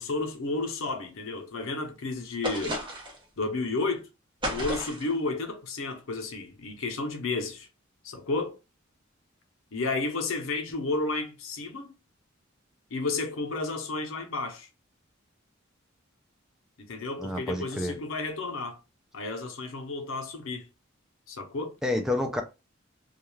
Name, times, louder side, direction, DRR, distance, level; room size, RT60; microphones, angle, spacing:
voice 1, 0.0-2.8 3.4-4.1 4.5-7.7 8.0-8.6 9.7-11.9 12.9-14.7 16.8-18.8 19.1-20.6 21.3-21.7, left 3 dB, 75° left, 0.6 m, -32 dB
sound 1, 2.4-3.2 4.4-5.1, equal, 25° right, 0.7 m, -33 dB
voice 2, 17.2-18.0 21.8-22.4, left 1 dB, 5° right, 0.3 m, -29 dB
2.3 x 2.2 x 3.0 m
head